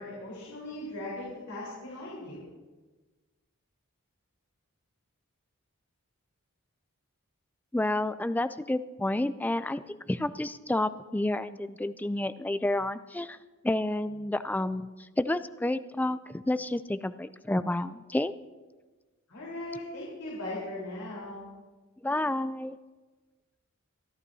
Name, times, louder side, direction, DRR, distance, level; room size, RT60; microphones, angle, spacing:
voice 1, 0.0-2.4 19.3-21.4, left 1 dB, 80° left, -6 dB, 4.0 m, -39 dB
voice 2, 7.7-13.4 13.6-14.9 15.2-18.3 22.0-22.8, left 1 dB, 5° left, 13 dB, 0.3 m, -30 dB
26.0 x 11.0 x 2.7 m, 1.3 s
head